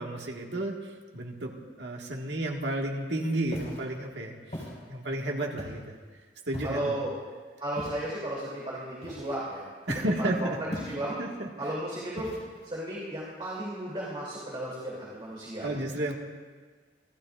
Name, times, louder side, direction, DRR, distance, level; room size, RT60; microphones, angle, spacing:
voice 1, 0.0-5.9 6.5-7.0 9.9-10.8 11.2-11.5 15.6-16.2, right 1 dB, 85° right, 0 dB, 1.8 m, -32 dB
Walk footsteps, 3.5-3.8 4.5-4.8 5.6-5.9 6.5-6.9 7.8-8.1 9.0-9.5 9.9-10.2 10.7-11.2 12.2-12.7, left 1 dB, 40° left, 4.4 m, -39 dB
voice 2, 6.6-7.1 7.6-9.6 9.9-10.5 10.9-11.2 11.6-12.3 12.6-15.7, right 1 dB, 30° right, -6 dB, 3.0 m, -34 dB
27.0 x 13.0 x 2.5 m, 1.5 s
head